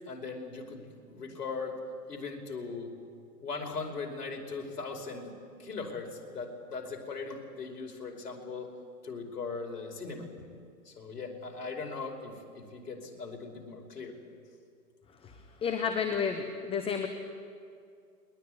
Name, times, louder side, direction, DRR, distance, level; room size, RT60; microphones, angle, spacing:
voice 1, 0.1-1.7 2.1-2.9 3.4-5.3 5.6-8.7 9.0-10.3 10.9-14.2, left 4 dB, 70° left, 2 dB, 5.3 m, -39 dB
voice 2, 15.6-17.1, left 6 dB, 10° left, 7 dB, 1.0 m, -30 dB
21.5 x 21.0 x 9.6 m, 2.4 s
hypercardioid pair, 125°, 48 cm